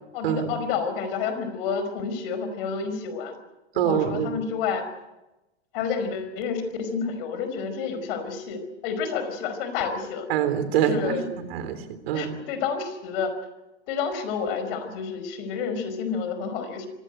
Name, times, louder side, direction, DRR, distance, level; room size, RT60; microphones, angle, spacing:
voice 1, 0.1-3.4 3.8-4.9 5.7-10.3 10.7-11.3 12.1-13.3 13.9-16.9, left 6 dB, 60° left, 9 dB, 5.0 m, -29 dB
voice 2, 3.8-4.3 10.3-12.3, right 9 dB, 65° right, 11 dB, 3.5 m, -25 dB
24.5 x 17.0 x 9.1 m, 1.0 s
hypercardioid pair, 100°, 33 cm